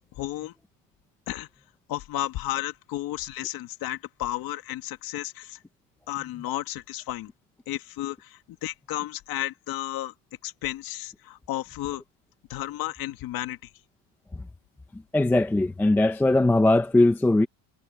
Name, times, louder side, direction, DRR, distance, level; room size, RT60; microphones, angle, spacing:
voice 1, 0.2-0.5 1.3-1.5 1.9-5.6 6.1-7.3 7.7-10.1 10.4-12.0 12.5-13.7, left 15 dB, 45° left, 2.1 m, -33 dB
voice 2, 15.1-17.5, left 2 dB, 5° left, 0.5 m, -20 dB
cardioid pair, 170°, 49 cm